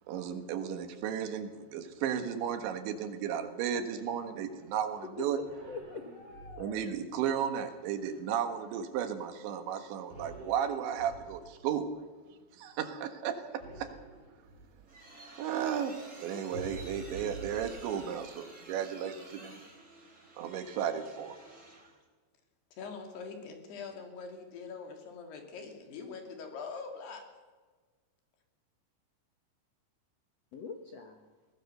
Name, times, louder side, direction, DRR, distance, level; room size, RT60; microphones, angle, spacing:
voice 1, 0.1-5.4 6.6-11.9 12.6-13.9 15.4-19.6 20.4-21.4, right 8 dB, 80° right, 7 dB, 3.8 m, -34 dB
voice 2, 5.2-6.8 30.5-31.3, left 4 dB, 85° left, 3 dB, 1.4 m, -43 dB
sound 1, 5.4-6.9 10.1-11.6 13.6-14.8 16.5-18.2, right 2 dB, 50° right, 6.8 m, -47 dB
sound 2, 14.5-22.0, right 2 dB, 15° right, 3.5 m, -52 dB
voice 3, 22.7-27.2, left 5 dB, 65° left, 4 dB, 4.5 m, -43 dB
22.5 x 18.0 x 6.8 m, 1.4 s
omnidirectional pair, 5.3 m